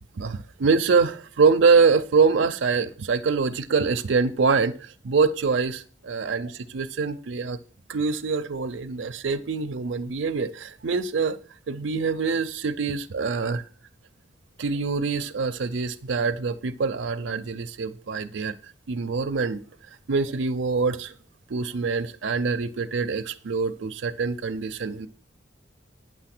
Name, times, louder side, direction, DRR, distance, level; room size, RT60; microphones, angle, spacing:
voice 1, 0.2-7.6 7.9-11.4 11.7-13.6 14.6-18.5 18.9-19.6 20.1-21.1 21.5-25.1, right 4 dB, 80° right, 0.5 m, -24 dB
9.2 x 5.7 x 6.0 m
head